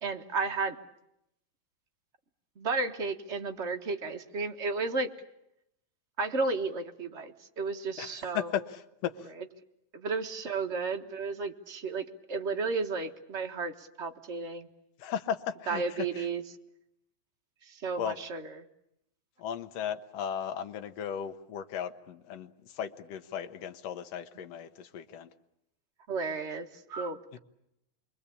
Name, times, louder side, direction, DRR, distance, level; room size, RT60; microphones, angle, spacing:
voice 1, 0.0-0.8 2.6-5.1 6.2-8.5 9.9-14.7 15.7-16.4 17.7-18.6 26.1-27.4, right 4 dB, 35° right, 5 dB, 1.1 m, -33 dB
voice 2, 8.0-9.1 15.0-16.3 18.0-18.2 19.4-25.3, left 9 dB, 65° left, 7 dB, 2.2 m, -36 dB
28.0 x 22.5 x 8.5 m, 0.81 s
omnidirectional pair, 3.3 m